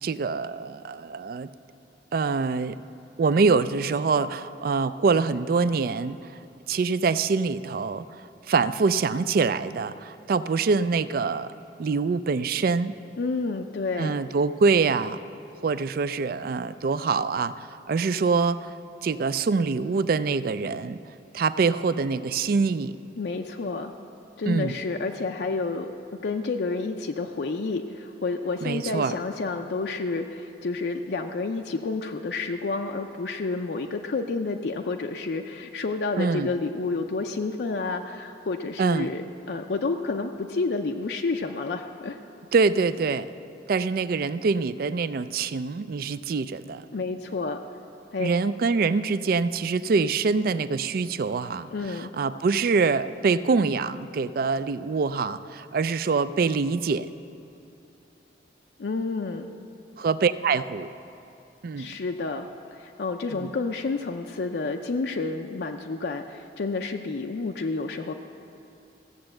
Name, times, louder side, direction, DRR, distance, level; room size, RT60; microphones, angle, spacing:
voice 1, 0.0-1.5 2.1-2.8 3.2-6.2 6.7-8.2 8.5-11.5 11.8-12.9 13.9-15.2 15.6-18.7 19.0-21.0 21.3-23.0 24.5-24.8 28.6-29.2 36.2-36.5 38.8-39.1 42.5-43.3 43.7-46.8 48.2-57.1 60.0-60.9 61.6-61.9 63.3-63.5, right 4 dB, 55° right, 14 dB, 0.4 m, -25 dB
voice 2, 13.2-14.2 23.2-23.9 24.4-25.9 26.2-39.2 39.5-42.2 46.9-47.6 48.1-48.3 51.7-52.1 58.8-59.5 61.8-68.1, left 3 dB, 65° left, 3 dB, 0.5 m, -30 dB
15.0 x 7.0 x 7.6 m, 2.7 s
head